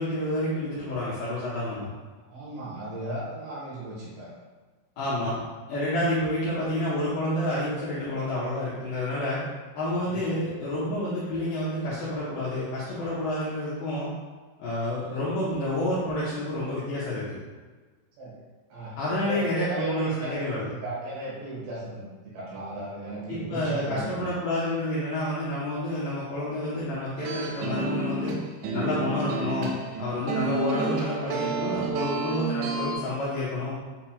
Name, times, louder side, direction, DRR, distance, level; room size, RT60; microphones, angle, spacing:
voice 1, 0.0-1.9 5.0-5.4 5.7-9.4 9.7-14.1 14.6-17.3 19.0-20.7 23.3-28.3 28.7-29.7 30.0-33.7, left 1 dB, 80° left, -9 dB, 2.1 m, -29 dB
voice 2, 2.2-4.3 10.0-10.3 18.2-18.4 18.7-19.0 19.3-22.1 22.3-24.3, right 2 dB, 75° right, -7 dB, 3.5 m, -36 dB
sound 1, 27.2-33.0, right 2 dB, 90° right, 3.0 m, -30 dB
7.6 x 2.8 x 2.3 m, 1.4 s
omnidirectional pair, 5.1 m